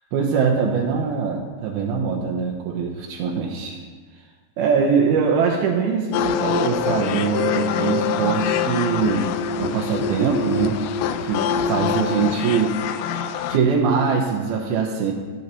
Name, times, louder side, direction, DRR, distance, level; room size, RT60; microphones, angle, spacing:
voice 1, 0.1-3.8 4.6-10.8 11.2-12.8 13.5-15.1, right 5 dB, 85° right, 0 dB, 2.9 m, -22 dB
sound 1, 6.1-13.6, left 7 dB, 80° left, 2.0 m, -25 dB
13.5 x 12.5 x 3.1 m, 1.4 s
omnidirectional pair, 4.2 m